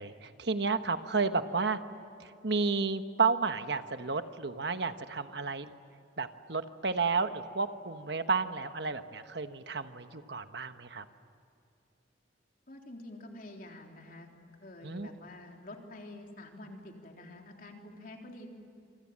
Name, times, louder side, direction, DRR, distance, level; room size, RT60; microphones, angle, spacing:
voice 1, 0.0-1.8 2.2-5.7 6.2-11.0 14.8-15.1, right 4 dB, 60° right, 9 dB, 1.2 m, -32 dB
voice 2, 12.7-14.3 14.6-18.5, left 1 dB, 50° left, 2 dB, 3.7 m, -48 dB
28.0 x 26.0 x 7.6 m, 2.7 s
head